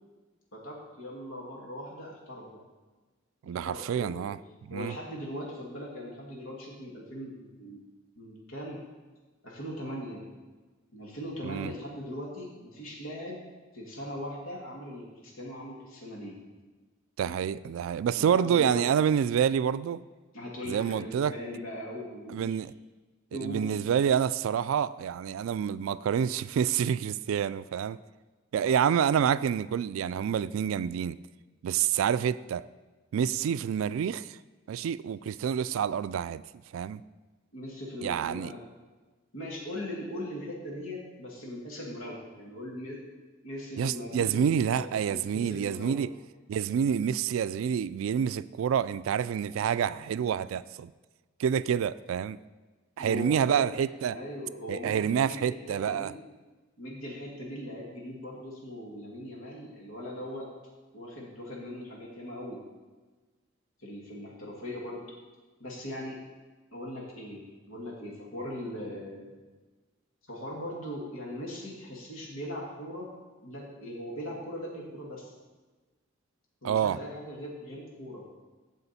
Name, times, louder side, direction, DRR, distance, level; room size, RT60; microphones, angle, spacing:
voice 1, 0.5-2.6 3.4-4.3 4.7-7.8 8.2-8.8 9.4-10.2 10.9-13.4 13.7-16.4 18.1-18.8 20.3-22.6 23.3-23.8 37.5-38.6 39.3-43.0 43.4-44.4 44.7-46.0 53.0-53.6 54.1-56.1 56.8-60.5 60.9-62.6 63.8-65.0 65.6-66.2 66.7-69.3 70.3-73.1 73.4-75.3 76.6-78.2, equal, 85° left, 1.9 m, -40 dB
voice 2, 3.4-4.4 4.7-4.9 11.4-11.7 17.2-20.0 20.7-21.3 22.3-22.7 23.3-28.0 28.5-31.2 31.6-32.7 33.1-34.4 34.7-36.4 36.7-37.0 38.0-38.5 43.8-46.1 46.5-50.9 51.4-52.4 53.0-54.2 54.7-56.1 76.6-77.0, right 8 dB, 80° right, 0.3 m, -28 dB
14.5 x 5.1 x 4.2 m
head